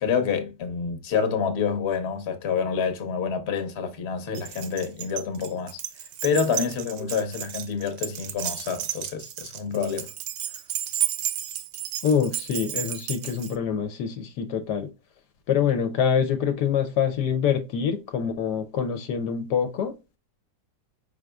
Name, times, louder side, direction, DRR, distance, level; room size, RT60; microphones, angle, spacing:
voice 1, 0.0-5.8 6.2-10.1, left 6 dB, 45° left, 1.0 m, -27 dB
Keys jangling, 4.3-13.6, right 11 dB, 80° right, 1.3 m, -32 dB
voice 2, 12.0-14.9 15.5-20.2, left 7 dB, 75° left, 1.2 m, -25 dB
4.9 x 4.5 x 2.2 m
omnidirectional pair, 1.9 m